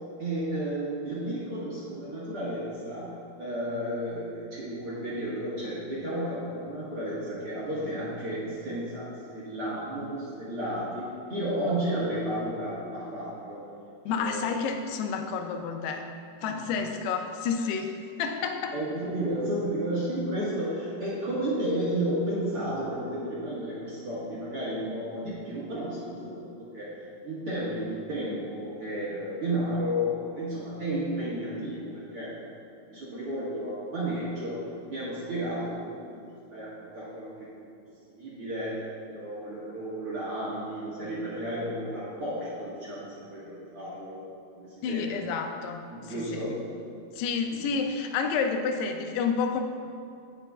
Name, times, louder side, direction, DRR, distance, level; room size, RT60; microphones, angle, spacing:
voice 1, 0.2-9.0 9.3-13.6 14.2-14.4 16.4-16.7 18.7-26.9 27.2-31.8 32.1-32.5 32.9-34.6 34.9-36.1 36.5-37.5 38.2-44.3 44.5-45.2 45.9-46.6 47.5-47.6, right 1 dB, 50° right, -9 dB, 1.7 m, -32 dB
voice 2, 14.1-16.1 16.4-18.8 44.8-46.5 47.2-49.6, left 5 dB, 85° left, 5 dB, 2.7 m, -30 dB
16.5 x 5.8 x 2.4 m, 2.5 s
omnidirectional pair, 4.6 m